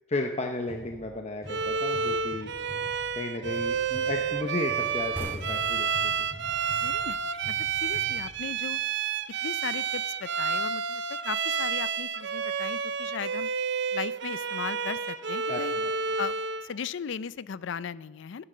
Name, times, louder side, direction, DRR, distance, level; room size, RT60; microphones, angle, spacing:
voice 1, 0.1-2.5 3.2-6.3 15.5-15.9, left 2 dB, 30° left, 4 dB, 0.7 m, -34 dB
sound 1, 0.7-8.7, equal, 15° left, 2.2 m, -47 dB
Bowed string instrument, 1.5-16.7, right 6 dB, 55° right, 0.5 m, -30 dB
sound 2, 5.2-8.6, left 1 dB, 10° right, 2.0 m, -42 dB
voice 2, 6.8-8.8 9.4-13.5 13.9-15.7 16.2-16.4 16.6-18.4, left 7 dB, 60° left, 18 dB, 0.4 m, -37 dB
13.5 x 9.9 x 6.7 m, 1.3 s
head